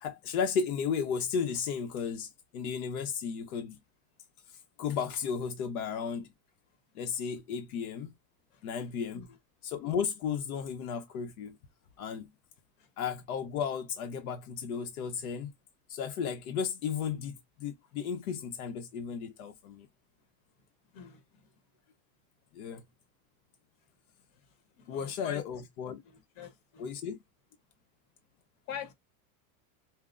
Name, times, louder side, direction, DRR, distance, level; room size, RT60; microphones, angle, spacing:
voice 1, 0.0-3.8 4.5-6.3 6.9-8.1 8.6-9.3 9.6-11.6 12.0-12.3 13.0-15.5 15.9-19.9 22.5-22.8 24.9-26.0 26.8-27.2, left 6 dB, 85° left, 0.8 m, -34 dB
voice 2, 24.8-25.4 26.0-26.8 28.7-28.9, left 8 dB, 65° left, 1.3 m, -44 dB
5.6 x 2.1 x 2.5 m
supercardioid pair, 165°, 42 cm